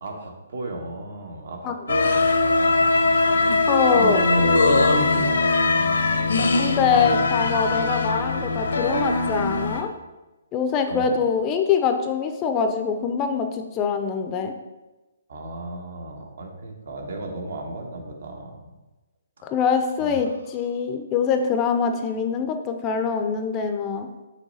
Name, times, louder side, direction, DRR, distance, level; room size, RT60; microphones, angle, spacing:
voice 1, 0.0-3.5 3.9-5.6 10.9-11.2 15.3-18.7 20.0-20.4, right 2 dB, 70° right, 2 dB, 1.3 m, -35 dB
sound 1, 1.9-9.8, left 3 dB, 85° left, 1.0 m, -21 dB
voice 2, 3.7-4.2 6.5-9.9 10.5-14.5 19.4-24.1, left 6 dB, 20° left, 6 dB, 0.5 m, -24 dB
6.2 x 3.3 x 5.5 m, 1.1 s
hypercardioid pair, 155°, 0 cm